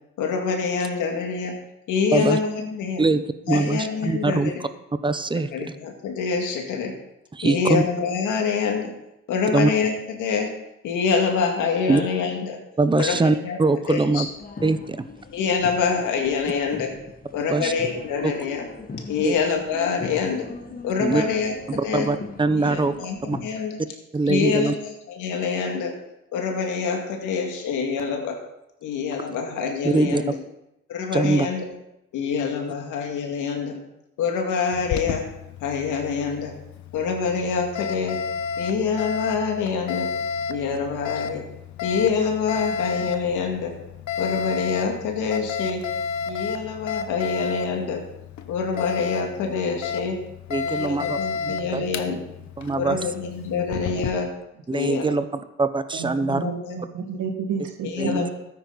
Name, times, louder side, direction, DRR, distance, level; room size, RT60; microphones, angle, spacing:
voice 1, 0.2-1.6 1.9-3.0 3.5-4.5 5.5-6.9 7.4-8.9 9.3-10.5 10.8-12.6 13.0-13.2 13.4-13.6 13.9-14.2 15.3-16.9 17.3-18.6 19.1-20.5 20.8-21.5 21.8-22.1 22.6-23.1 23.4-23.8 24.3-25.9 26.3-28.4 28.8-30.3 30.9-31.6 32.1-33.8 34.2-35.2 35.6-36.5 36.9-38.2 38.6-40.1 40.5-41.4 41.8-43.7 44.2-45.8 46.3-48.0 48.5-50.2 50.6-52.2 52.8-54.3 54.7-55.2 56.3-56.8 57.8-58.3, left 5 dB, 90° left, 2 dB, 2.2 m, -26 dB
voice 2, 3.0-4.7 5.0-5.8 7.3-7.8 9.5-9.7 11.9-12.0 12.8-14.3 14.6-15.1 17.5-17.7 18.2-18.3 19.2-19.3 21.0-21.2 21.7-23.0 23.3-23.4 24.1-24.7 29.8-30.2 31.1-31.5 50.5-51.2 51.7-51.8 52.6-53.0 54.7-56.5 58.0-58.3, right 3 dB, 15° right, 12 dB, 0.7 m, -22 dB
sound 1, 13.9-23.4, left 3 dB, 30° left, 1.4 m, -39 dB
Alarm, 34.7-54.1, left 6 dB, 70° left, 1.0 m, -32 dB
voice 3, 51.0-52.2 52.9-53.1 53.9-54.1 55.9-58.3, right 5 dB, 85° right, 2 dB, 1.9 m, -32 dB
13.5 x 9.7 x 4.0 m, 0.86 s
cardioid pair, 90°, 30 cm